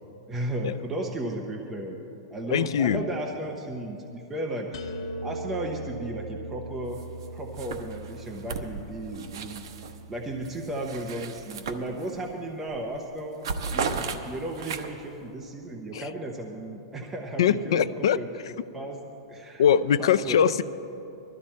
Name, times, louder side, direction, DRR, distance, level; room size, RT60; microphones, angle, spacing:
voice 1, 0.3-4.8 5.2-7.0 7.3-9.6 10.1-13.4 13.7-18.3 18.6-19.0 19.3-19.6 20.0-20.4, right 1 dB, 10° right, 0 dB, 0.7 m, -34 dB
voice 2, 2.5-3.0 15.9-16.1 17.4-18.2 19.6-20.6, left 8 dB, 75° left, 13 dB, 0.5 m, -22 dB
sound 1, 4.7-10.5, right 1 dB, 50° left, 1.5 m, -39 dB
sound 2, 6.9-7.3 7.5-10.0 10.4-12.3 12.7-12.9 13.2-15.1, right 5 dB, 65° right, 1.0 m, -35 dB
20.0 x 13.0 x 4.4 m, 2.9 s
supercardioid pair, 175°, 3 cm